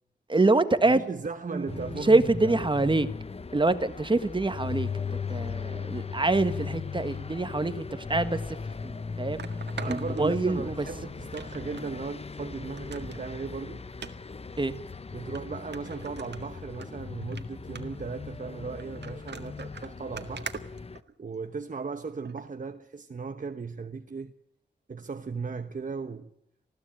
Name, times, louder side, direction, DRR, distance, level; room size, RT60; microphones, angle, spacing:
voice 1, 0.3-1.0 1.5-3.1 3.5-4.9 5.3-8.6 8.8-9.4 9.8-10.9 14.6-14.7, right 2 dB, 25° right, 1.6 m, -25 dB
voice 2, 0.9-2.6 9.7-13.8 15.1-20.5 21.2-24.3 24.9-26.3, right 4 dB, 45° right, 1.1 m, -37 dB
sound 1, 1.7-21.0, left 5 dB, 35° left, 0.8 m, -38 dB
sound 2, 8.3-8.4 9.4-10.8 11.3-11.9 12.3-12.4 12.8-13.2 13.9-14.1 14.9-15.0 15.4-15.5 15.7-16.9 17.2-17.4 17.8-18.1 18.8-21.5 22.3-22.5 23.0-23.1, right 6 dB, 70° right, 1.8 m, -43 dB
20.5 x 15.5 x 8.9 m
wide cardioid pair, 75°, 18 cm